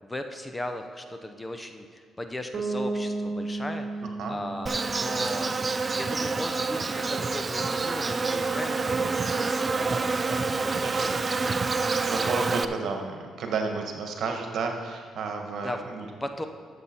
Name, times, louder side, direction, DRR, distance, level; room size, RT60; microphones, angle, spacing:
voice 1, 0.0-11.4 15.6-15.8 16.2-16.4, left 1 dB, 15° left, 7 dB, 0.7 m, -38 dB
Bass guitar, 2.5-6.4, right 3 dB, 50° right, 1.6 m, -34 dB
Insect, 4.7-12.7, right 4 dB, 30° right, 0.4 m, -27 dB
voice 2, 10.7-11.3 11.6-16.1, right 4 dB, 70° right, 3 dB, 1.4 m, -32 dB
12.5 x 7.1 x 4.4 m, 2.1 s
cardioid pair, 90°, 0 cm